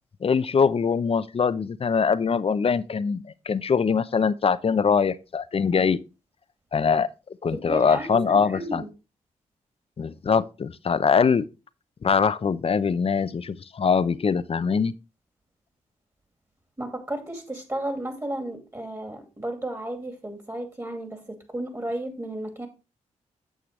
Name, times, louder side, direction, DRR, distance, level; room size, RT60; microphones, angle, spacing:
voice 1, 0.2-6.0 6.7-7.1 7.4-8.8 10.0-11.4 12.0-14.9, left 6 dB, 45° left, 0.6 m, -23 dB
voice 2, 7.5-8.9 16.8-22.7, right 1 dB, 20° right, 2.4 m, -33 dB
8.8 x 6.7 x 3.2 m
supercardioid pair, 50°, 14 cm